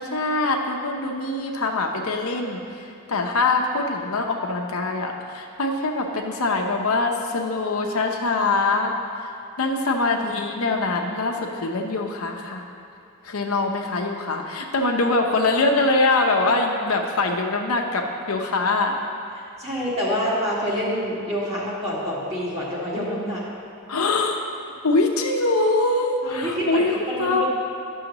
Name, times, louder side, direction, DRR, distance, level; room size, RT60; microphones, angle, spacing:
voice 1, 0.0-2.8 3.1-8.9 9.2-9.3 9.6-12.6 13.2-19.0 23.9-24.4 24.8-26.9 27.2-27.5, left 3 dB, 85° left, 2 dB, 0.8 m, -23 dB
voice 2, 19.6-23.4 26.2-27.5, equal, 30° right, -7 dB, 1.8 m, -27 dB
11.5 x 6.3 x 3.0 m, 2.6 s
head